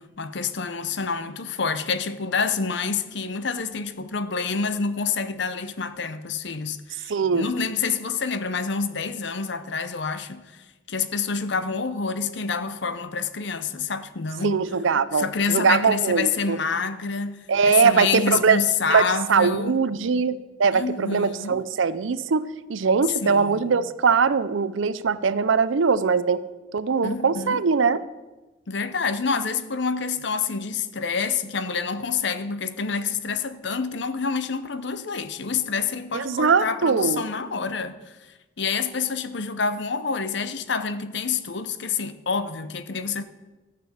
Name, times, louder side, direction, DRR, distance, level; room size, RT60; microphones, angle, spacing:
voice 1, 0.0-10.4 10.9-14.6 15.2-19.8 20.7-21.6 23.2-23.8 27.0-27.6 28.7-38.0 38.6-43.2, left 5 dB, 60° left, 0.7 m, -27 dB
voice 2, 7.1-7.5 14.4-16.6 17.5-18.6 18.9-22.4 22.7-26.4 26.7-28.0 36.1-37.2, right 5 dB, 75° right, 0.5 m, -21 dB
13.0 x 6.7 x 7.0 m
head